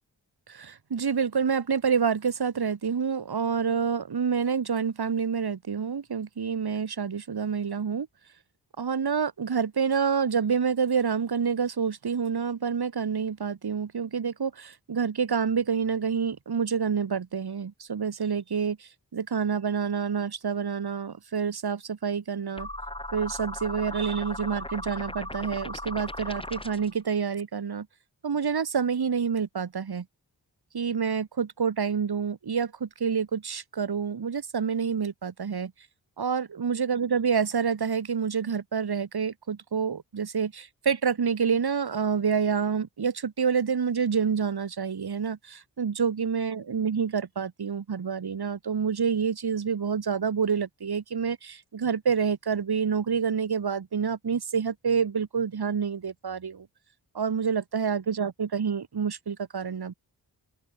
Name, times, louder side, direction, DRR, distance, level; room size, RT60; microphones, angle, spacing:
voice 1, 0.5-8.1 8.8-22.7 23.1-27.9 28.2-30.0 30.7-35.7 36.2-56.7 57.1-59.9, right 6 dB, 60° right, 3.2 m, -28 dB
sound 1, 22.6-27.0, left 1 dB, 10° left, 5.7 m, -37 dB
open air
cardioid pair, 45°, 42 cm